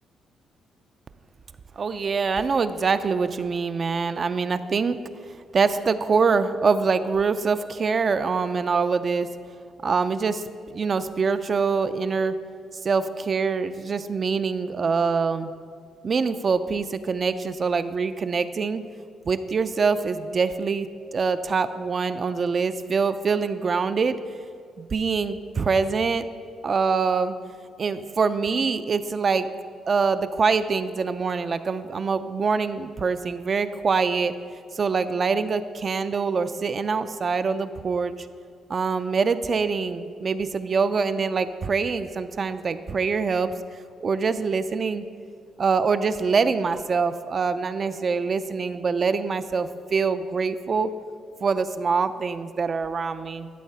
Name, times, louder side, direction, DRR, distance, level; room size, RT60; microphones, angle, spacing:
voice 1, 1.8-5.0 5.5-9.3 9.8-10.4 10.7-12.3 12.8-15.5 16.0-18.8 19.3-20.9 21.1-24.2 24.8-26.3 26.6-27.3 27.8-29.5 29.9-34.3 34.7-38.2 38.7-43.5 44.0-45.1 45.6-50.9 51.4-53.5, right 5 dB, 40° right, 11 dB, 0.3 m, -24 dB
11.5 x 3.9 x 5.5 m, 2.2 s
cardioid pair, 90°, 0 cm